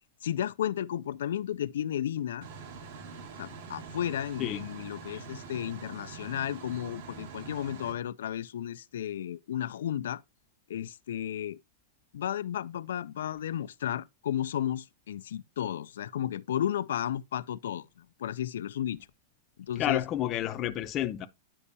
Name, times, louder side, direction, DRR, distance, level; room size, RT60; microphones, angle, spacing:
voice 1, 0.2-2.5 3.4-10.2 10.7-11.6 12.1-17.9 18.2-19.0 19.6-20.0, left 10 dB, 85° left, 0.4 m, -33 dB
sound 1, 2.4-7.9, right 5 dB, 60° right, 1.8 m, -44 dB
voice 2, 19.8-21.3, left 12 dB, 25° left, 0.6 m, -30 dB
9.9 x 5.4 x 2.7 m
supercardioid pair, 165°, 0 cm